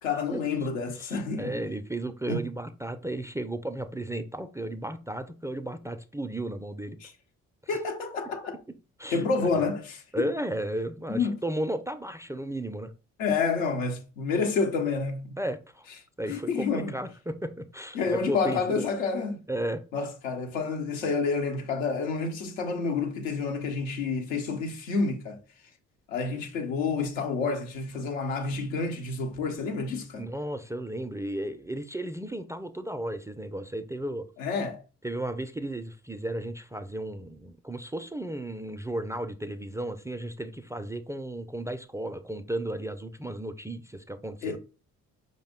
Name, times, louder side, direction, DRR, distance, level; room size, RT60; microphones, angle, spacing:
voice 1, 0.0-1.6 2.3-2.4 7.0-7.1 7.7-8.6 9.1-10.3 11.1-11.4 13.2-15.4 16.3-16.9 17.9-19.4 19.9-25.4 26.1-30.2 34.4-34.8 44.4-44.6, left 4 dB, 85° left, 0.8 m, -29 dB
voice 2, 1.0-7.0 7.6-7.8 9.0-9.6 10.1-12.9 15.4-15.9 16.2-18.8 19.5-19.8 30.2-34.3 35.0-44.6, right 1 dB, 10° right, 0.3 m, -34 dB
5.2 x 2.1 x 3.6 m
hypercardioid pair, 45°, 39 cm